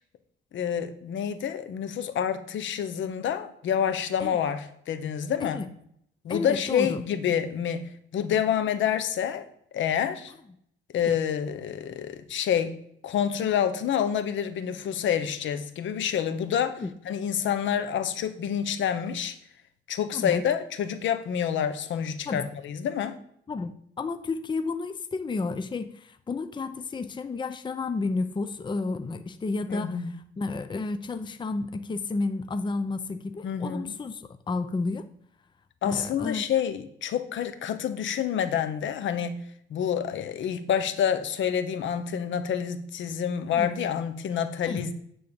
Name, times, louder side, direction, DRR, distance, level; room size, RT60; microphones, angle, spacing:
voice 1, 0.5-5.6 6.2-9.5 9.7-10.3 10.9-12.7 13.0-19.4 19.9-23.2 29.7-30.1 33.4-33.9 35.8-44.9, left 8 dB, 70° left, 10 dB, 1.0 m, -28 dB
voice 2, 6.3-7.0 16.8-16.9 20.1-20.4 22.3-22.5 23.5-35.1 35.8-36.4 43.5-43.7 44.7-44.8, left 3 dB, 25° left, 10 dB, 0.6 m, -31 dB
9.6 x 3.8 x 6.9 m, 0.68 s
cardioid pair, 90°, 20 cm